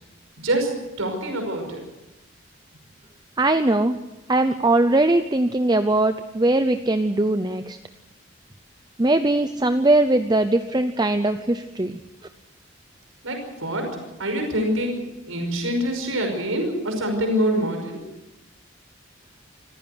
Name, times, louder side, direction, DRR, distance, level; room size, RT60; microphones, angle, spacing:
voice 1, 0.4-0.7 1.0-1.8 13.2-13.9 14.2-15.0 15.3-18.0, equal, 80° right, 4 dB, 5.6 m, -25 dB
voice 2, 3.4-4.0 4.3-7.8 9.0-12.0, right 2 dB, 20° right, 9 dB, 0.6 m, -20 dB
25.5 x 15.0 x 8.0 m, 1.0 s
head